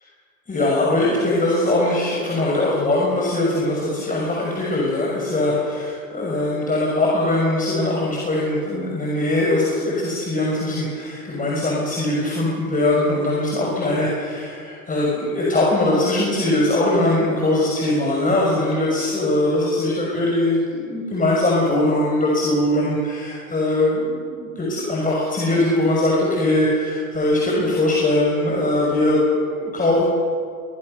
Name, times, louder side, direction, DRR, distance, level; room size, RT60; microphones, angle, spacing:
voice 1, 0.5-30.0, left 1 dB, 20° left, -3 dB, 6.1 m, -21 dB
24.5 x 21.5 x 6.7 m, 2.2 s
hypercardioid pair, 90°, 43 cm